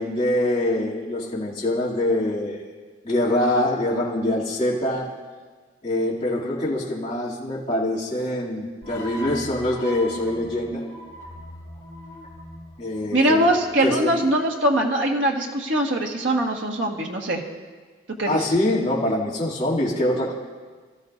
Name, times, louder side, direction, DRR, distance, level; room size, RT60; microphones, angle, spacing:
voice 1, 0.0-2.6 3.0-5.1 5.8-10.8 12.8-13.5 13.8-14.1 18.3-20.3, left 1 dB, 30° left, -8 dB, 2.8 m, -24 dB
sound 1, 8.8-14.0, equal, 15° left, 5.7 m, -40 dB
voice 2, 13.1-17.4 18.2-18.4, right 1 dB, 90° right, 1 dB, 1.7 m, -22 dB
25.0 x 14.0 x 2.7 m, 1.4 s
head